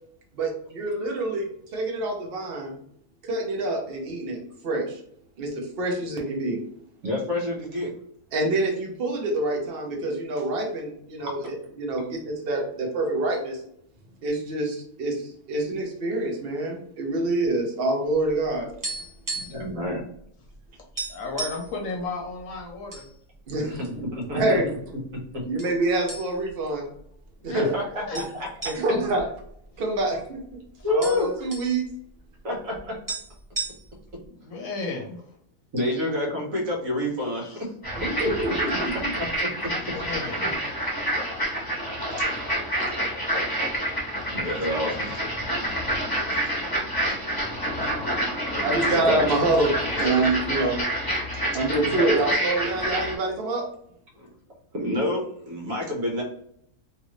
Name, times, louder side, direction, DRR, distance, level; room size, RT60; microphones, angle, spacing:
voice 1, 0.3-1.5 1.7-2.8 3.2-5.0 5.4-6.6 8.3-13.6 14.2-18.7 23.5-23.8 24.3-24.8 25.5-26.9 27.4-27.7 28.1-28.2 28.6-29.3 29.8-30.6 30.9-31.9 37.9-39.1 40.5-40.6 48.6-50.8 51.5-53.7, right 2 dB, 45° right, 0 dB, 0.9 m, -26 dB
voice 2, 7.0-7.9 19.4-20.0 23.7-23.8 24.1-24.6 27.7-28.5 30.8-31.3 32.4-32.9 35.7-37.7 44.3-45.1 48.8-49.2 51.3-51.4 51.9-52.0 54.2-54.3 54.7-55.2 55.5-56.2, left 1 dB, 65° right, -1 dB, 1.5 m, -28 dB
sound 1, 18.5-19.7 20.0-20.2 20.5-20.6 21.0-21.7 22.4-23.1 23.4-23.6 24.3-24.9 25.6-25.8 26.1-26.6 27.0-27.1 28.1-30.2 30.5-30.6 30.8-31.7 32.8-32.9 33.1-34.1, right 3 dB, 25° right, 0.4 m, -34 dB
voice 3, 21.1-23.1 27.4-27.6 27.9-28.2 29.7-29.8 30.8-30.9 34.3-35.4 37.4-37.6 39.7-40.6, left 3 dB, 65° left, 0 dB, 1.0 m, -34 dB
sound 2, 37.8-53.1, right 1 dB, 15° left, 1.0 m, -28 dB
3.0 x 2.6 x 3.1 m, 0.69 s
omnidirectional pair, 1.6 m